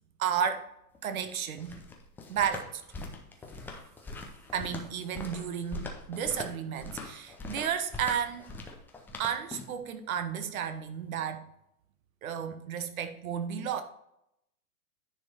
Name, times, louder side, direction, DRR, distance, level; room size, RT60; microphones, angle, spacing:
voice 1, 0.2-0.7 1.0-1.8 2.3-2.8 4.5-8.5 9.2-11.5 12.2-13.8, right 8 dB, 65° right, 1.1 m, -32 dB
sound 1, 0.9-9.8, left 3 dB, 5° left, 0.4 m, -42 dB
9.7 x 4.4 x 4.1 m
hypercardioid pair, 120°, 45 cm